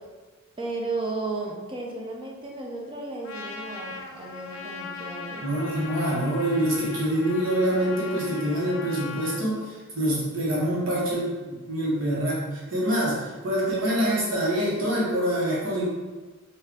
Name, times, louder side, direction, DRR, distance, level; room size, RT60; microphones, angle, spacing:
voice 1, 0.6-5.5, right 3 dB, 25° right, -1 dB, 0.6 m, -34 dB
Trumpet, 3.2-9.5, left 4 dB, 60° left, 0.4 m, -39 dB
voice 2, 5.4-15.9, right 1 dB, 65° right, -6 dB, 1.4 m, -26 dB
4.3 x 2.6 x 3.6 m, 1.3 s
head